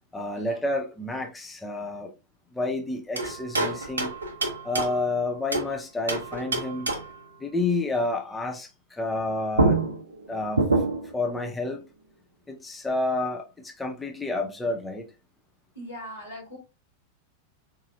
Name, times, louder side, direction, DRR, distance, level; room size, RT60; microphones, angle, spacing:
voice 1, 0.1-2.1 2.5-4.1 4.6-6.9 7.4-9.9 10.3-10.7 11.1-11.8 12.5-15.1, left 2 dB, 10° left, 0.6 m, -29 dB
sound 1, 3.1-5.7 6.1-7.2 9.2-9.3 9.5-11.2, right 2 dB, 75° right, 0.6 m, -27 dB
voice 2, 15.8-16.6, equal, 85° left, 2.0 m, -40 dB
3.9 x 2.7 x 2.5 m
figure-of-eight pair, 90°, 0 cm